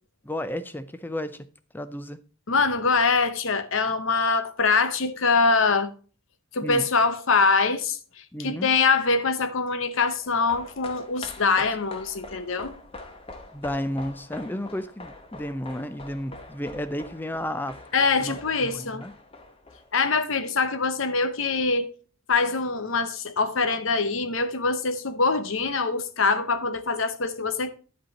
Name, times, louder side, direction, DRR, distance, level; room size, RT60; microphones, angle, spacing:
voice 1, 0.2-1.5 1.7-2.2 6.6-6.8 8.3-8.7 13.5-17.8 18.2-18.4 18.6-19.1, left 1 dB, 10° left, 0.5 m, -32 dB
voice 2, 2.5-5.9 6.5-8.0 8.4-12.7 17.9-19.0 19.9-21.9 22.3-27.7, left 4 dB, 65° left, 0.9 m, -24 dB
sound 1, 10.2-20.7 21.0-21.1, left 2 dB, 25° left, 1.0 m, -44 dB
10.0 x 5.3 x 4.1 m
head